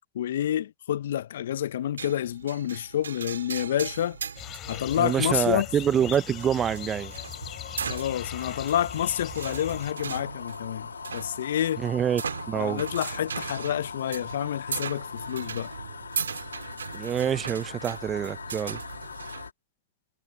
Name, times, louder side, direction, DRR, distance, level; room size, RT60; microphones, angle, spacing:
voice 1, 0.1-4.2 4.7-5.7 7.9-11.8 12.5-15.7, left 11 dB, 65° left, 0.7 m, -28 dB
sound 1, 2.0-19.5, right 6 dB, 80° right, 2.0 m, -38 dB
sound 2, 3.9-19.5, left 5 dB, 80° left, 2.0 m, -42 dB
sound 3, 4.4-9.9, left 13 dB, 35° left, 3.6 m, -40 dB
voice 2, 5.0-7.1 11.8-12.2 12.5-12.8 16.9-18.8, right 9 dB, 25° right, 0.6 m, -26 dB
figure-of-eight pair, 105°, 0 cm